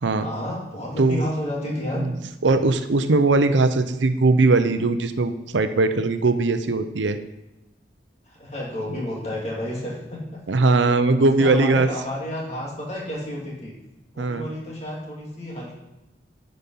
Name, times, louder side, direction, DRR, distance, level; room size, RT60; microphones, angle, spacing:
voice 1, 0.2-2.0 8.3-10.4 11.2-13.7 14.1-15.7, left 1 dB, 35° left, -3 dB, 2.2 m, -31 dB
voice 2, 2.4-7.2 10.5-11.9 14.2-14.5, right 3 dB, 90° right, 10 dB, 0.7 m, -20 dB
9.9 x 5.4 x 5.4 m, 0.97 s
head